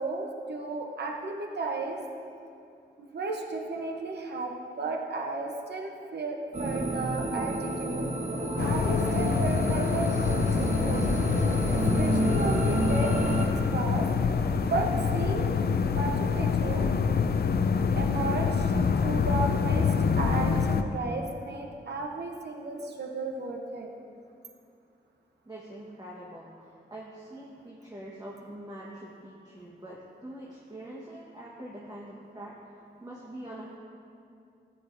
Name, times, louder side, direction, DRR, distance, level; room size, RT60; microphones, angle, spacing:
voice 1, 0.0-2.0 3.0-8.1 8.6-11.1 11.7-14.1 14.7-15.5 15.9-16.9 18.0-18.7 19.0-23.9, right 3 dB, 70° right, 2 dB, 0.9 m, -34 dB
sound 1, 6.5-13.5, right 2 dB, 40° right, 1.0 m, -30 dB
sound 2, 8.6-20.8, left 5 dB, 65° left, 0.5 m, -26 dB
Musical instrument, 13.9-16.0, left 1 dB, 40° left, 1.7 m, -41 dB
voice 2, 25.4-33.8, right 1 dB, 20° right, -5 dB, 1.3 m, -44 dB
13.0 x 10.0 x 2.6 m, 2.5 s
wide cardioid pair, 75°, 18 cm